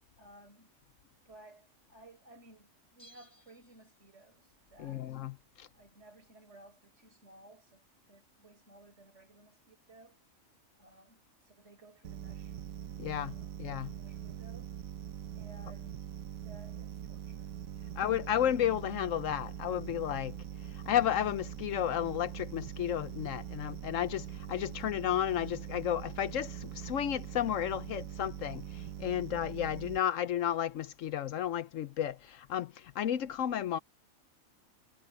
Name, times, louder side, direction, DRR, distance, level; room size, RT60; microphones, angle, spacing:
voice 1, 0.2-0.7 1.0-5.2 5.7-10.2 10.7-12.6 13.2-13.6 13.9-14.8 15.4-16.1 16.4-17.5 17.8-18.0, right 2 dB, 55° right, 5.7 m, -58 dB
Bell, 3.0-4.4 4.7-4.8, right 1 dB, 30° left, 6.3 m, -61 dB
voice 2, 4.8-5.7 13.0-13.9 18.0-20.3 20.9-33.8, left 10 dB, 70° left, 1.0 m, -33 dB
sound 1, 12.0-30.0, right 10 dB, 85° right, 1.3 m, -43 dB
omnidirectional pair, 1.4 m